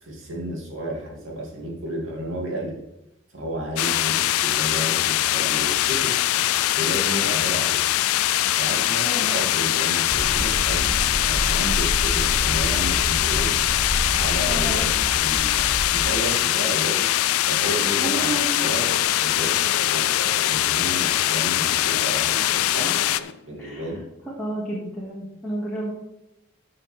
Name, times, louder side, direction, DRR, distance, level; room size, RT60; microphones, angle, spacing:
voice 1, 0.0-2.8 3.3-6.1 6.7-7.8 8.5-13.5 14.0-17.1 17.4-23.0 23.5-24.0, right 1 dB, 65° right, -2 dB, 2.7 m, -32 dB
sound 1, 3.8-23.2, left 14 dB, 90° left, 0.3 m, -22 dB
voice 2, 9.0-9.4 14.5-14.8 18.0-18.5 23.6-23.9 24.4-25.9, right 1 dB, 5° left, -9 dB, 2.1 m, -31 dB
sound 2, 10.1-16.0, equal, 10° right, 1.0 m, -29 dB
sound 3, 18.6-23.4, left 3 dB, 55° left, 0.7 m, -36 dB
13.5 x 5.7 x 3.6 m, 0.88 s
head